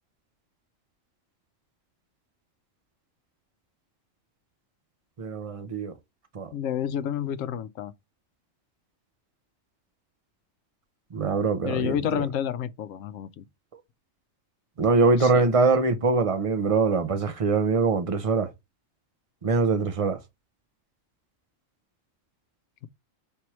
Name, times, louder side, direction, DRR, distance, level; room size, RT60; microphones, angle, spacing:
voice 1, 5.2-5.9 6.3-6.5 11.1-12.3 14.8-18.5 19.4-20.2, right 4 dB, 35° right, 0.5 m, -23 dB
voice 2, 6.5-7.9 11.6-13.4 15.2-15.4, left 9 dB, 80° left, 1.0 m, -30 dB
4.4 x 3.5 x 2.9 m
omnidirectional pair, 1.4 m